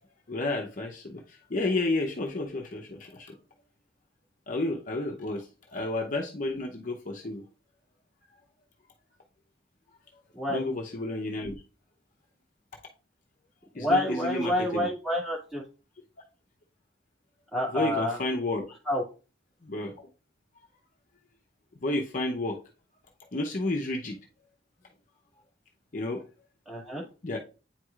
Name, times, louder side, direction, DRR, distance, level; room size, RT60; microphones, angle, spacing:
voice 1, 0.3-1.2 1.5-3.4 4.5-5.5 5.7-7.4 10.5-11.5 13.7-14.9 17.7-18.7 19.6-19.9 21.8-22.6 23.3-24.2 25.9-26.2 27.2-27.4, left 2 dB, 45° left, 1 dB, 0.7 m, -31 dB
voice 2, 13.8-15.6 17.5-18.2 18.9-19.0 26.7-27.0, left 1 dB, ahead, -5 dB, 1.9 m, -28 dB
8.8 x 4.7 x 2.4 m, 0.33 s
head